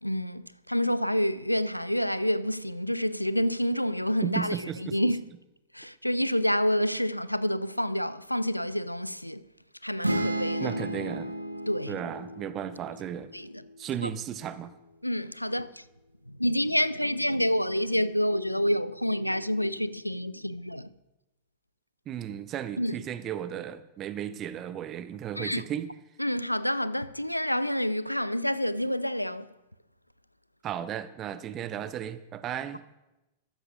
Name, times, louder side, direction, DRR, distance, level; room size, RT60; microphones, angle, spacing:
voice 1, 0.0-5.2 5.7-9.4 9.8-10.7 11.7-12.0 13.3-13.5 14.0-14.1 15.0-15.8 16.4-20.9 22.8-23.0 25.4-25.6 26.2-29.5, equal, 90° left, 0.3 m, -28 dB
voice 2, 4.2-5.0 10.6-11.3 11.9-13.3 13.8-14.7 22.1-25.9 30.6-32.8, right 9 dB, 30° right, 0.6 m, -35 dB
sound 1, 10.0-13.8, right 1 dB, 85° right, 0.9 m, -33 dB
14.0 x 12.5 x 2.5 m
figure-of-eight pair, 95°, 0 cm